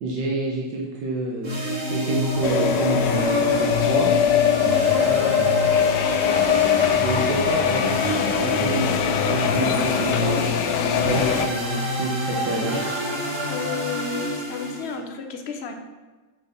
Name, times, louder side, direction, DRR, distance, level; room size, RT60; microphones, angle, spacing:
voice 1, 0.0-1.6 1.9-4.1 5.0-5.4 6.8-10.4 11.0-12.8, right 2 dB, 85° right, -2 dB, 1.9 m, -28 dB
sound 1, 1.4-14.9, equal, 65° right, 3.1 m, -27 dB
sound 2, 2.4-11.5, left 9 dB, 80° left, 1.2 m, -22 dB
voice 2, 4.7-5.4 13.5-15.7, left 5 dB, 45° left, 4 dB, 1.1 m, -32 dB
6.9 x 6.7 x 5.9 m, 1.3 s
omnidirectional pair, 1.8 m